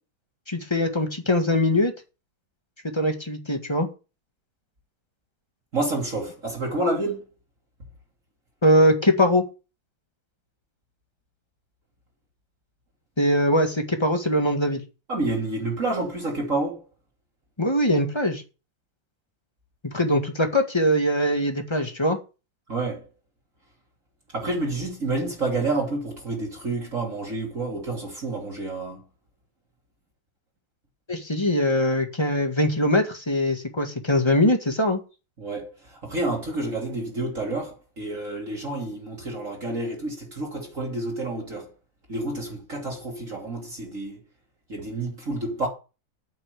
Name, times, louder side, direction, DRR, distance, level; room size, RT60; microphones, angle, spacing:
voice 1, 0.5-1.9 2.9-3.9 8.6-9.4 13.2-14.8 17.6-18.4 19.8-22.2 31.1-35.0, left 1 dB, 15° left, 1.6 m, -22 dB
voice 2, 5.7-7.2 15.1-16.9 22.7-23.1 24.3-29.0 35.4-41.7 42.1-44.2 44.7-45.7, right 2 dB, 40° right, 3.3 m, -29 dB
9.0 x 5.7 x 8.2 m
omnidirectional pair, 2.2 m